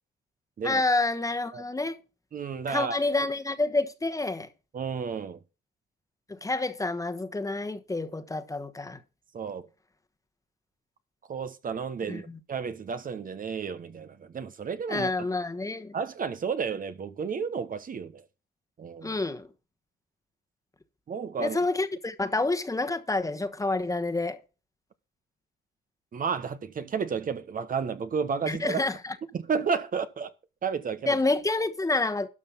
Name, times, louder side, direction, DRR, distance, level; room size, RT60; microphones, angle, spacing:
voice 1, 0.6-2.0 2.7-4.5 6.3-9.0 12.1-12.4 14.9-15.9 19.0-19.5 21.4-24.4 28.5-29.2 31.1-32.3, left 2 dB, 15° left, 1.2 m, -28 dB
voice 2, 2.3-3.0 4.7-5.4 9.3-9.7 11.3-15.3 15.9-18.2 18.8-19.2 21.1-21.6 26.1-28.8 29.3-30.3 30.6-31.2, right 6 dB, 45° right, 1.0 m, -32 dB
12.5 x 5.7 x 5.7 m
cardioid pair, 90°, 20 cm